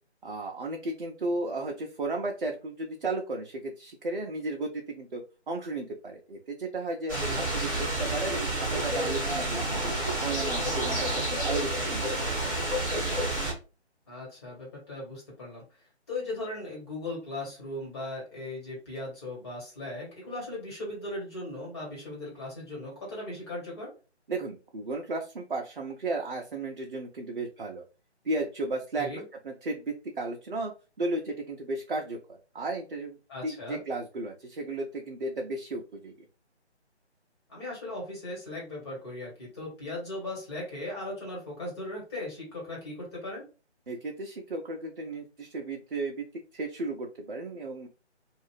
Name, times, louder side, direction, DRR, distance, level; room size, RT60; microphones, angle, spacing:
voice 1, 0.2-5.2 5.5-7.2 7.5-9.9 10.2-12.5 24.3-27.8 28.2-29.1 29.4-36.1 43.9-46.3 46.5-47.9, right 2 dB, 50° right, 1 dB, 0.6 m, -34 dB
voice 2, 7.1-7.5 14.1-15.6 16.1-23.9 28.9-29.2 33.3-33.8 37.5-43.5, left 2 dB, 25° left, -3 dB, 1.4 m, -38 dB
sound 1, 7.1-13.5, right 1 dB, 5° left, 0.6 m, -29 dB
2.6 x 2.4 x 3.1 m, 0.33 s
figure-of-eight pair, 150°, 34 cm